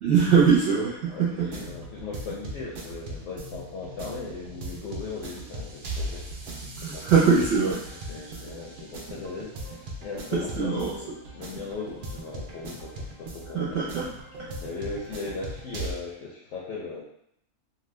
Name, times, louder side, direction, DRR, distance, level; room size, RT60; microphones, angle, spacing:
voice 1, 0.0-1.5 6.8-7.8 10.3-10.9 13.5-14.1 14.4-14.5, right 6 dB, 60° right, -8 dB, 0.9 m, -22 dB
voice 2, 1.1-6.5 6.8-7.1 8.1-13.8 14.6-17.0, left 3 dB, 65° left, -4 dB, 0.8 m, -38 dB
sound 1, 1.4-15.9, right 1 dB, 85° right, 0.4 m, -39 dB
2.8 x 2.2 x 3.1 m, 0.74 s
omnidirectional pair, 1.5 m